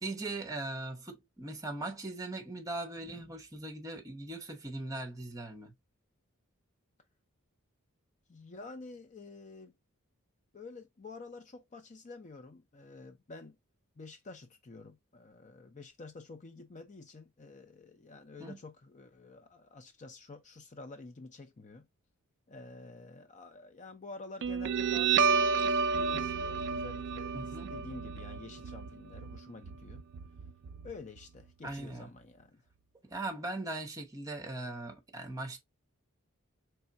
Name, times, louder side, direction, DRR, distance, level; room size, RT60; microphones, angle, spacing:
voice 1, 0.0-5.8 18.4-18.6 27.3-27.7 31.6-32.1 33.1-35.6, right 2 dB, 15° right, 0.9 m, -40 dB
voice 2, 8.3-9.7 10.5-13.6 14.0-21.9 22.5-25.4 25.9-27.3 27.7-30.0 30.8-32.6, left 3 dB, 35° left, 0.6 m, -49 dB
Guitar, 24.4-31.4, right 5 dB, 55° right, 0.4 m, -31 dB
4.3 x 3.3 x 2.5 m
head